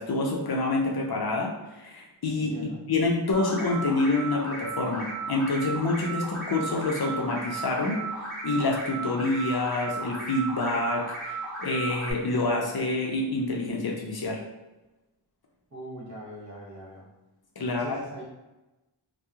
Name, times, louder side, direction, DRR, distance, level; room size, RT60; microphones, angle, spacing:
voice 1, 0.0-2.5 2.9-8.0 8.4-14.4 17.6-18.0, left 2 dB, 50° left, 0 dB, 0.5 m, -27 dB
voice 2, 2.4-2.8 15.7-17.1 17.6-18.2, right 1 dB, 35° right, -4 dB, 0.9 m, -41 dB
sound 1, 3.3-12.1, right 3 dB, ahead, 1.1 m, -35 dB
2.9 x 2.1 x 2.3 m, 1.0 s
wide cardioid pair, 45°, 48 cm